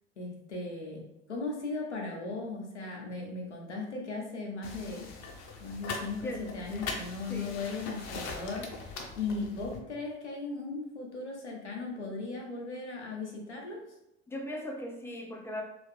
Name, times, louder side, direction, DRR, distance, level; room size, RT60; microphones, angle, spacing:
voice 1, 0.2-1.0 1.3-5.1 5.6-13.8, left 3 dB, 90° left, -1 dB, 0.7 m, -37 dB
sound 1, 4.6-9.8, left 3 dB, 50° left, 0.7 m, -41 dB
voice 2, 6.2-6.9 7.3-7.6 14.3-15.6, equal, 5° left, 1 dB, 0.6 m, -39 dB
3.1 x 2.4 x 3.2 m, 0.89 s
figure-of-eight pair, 60°, 34 cm